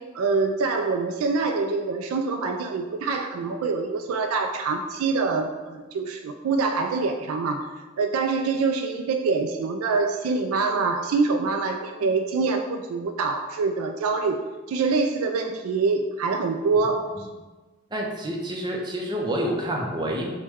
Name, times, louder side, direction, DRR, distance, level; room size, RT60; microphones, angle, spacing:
voice 1, 0.0-7.7 8.0-14.4 14.7-17.3, right 4 dB, 90° right, 5 dB, 0.3 m, -25 dB
voice 2, 17.9-20.3, equal, 20° right, 0 dB, 0.5 m, -28 dB
6.0 x 2.2 x 3.4 m, 1.3 s
head